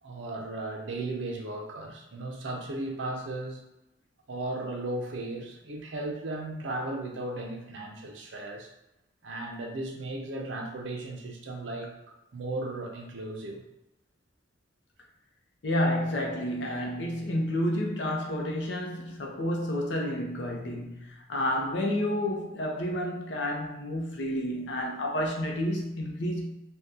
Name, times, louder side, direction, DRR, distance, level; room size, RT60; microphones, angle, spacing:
voice 1, 0.0-3.6 4.3-8.7 9.2-11.9 12.3-13.6, right 2 dB, 80° right, 2 dB, 0.6 m, -36 dB
voice 2, 15.6-26.5, left 1 dB, 75° left, 0 dB, 0.6 m, -30 dB
2.7 x 2.2 x 3.5 m, 0.92 s
head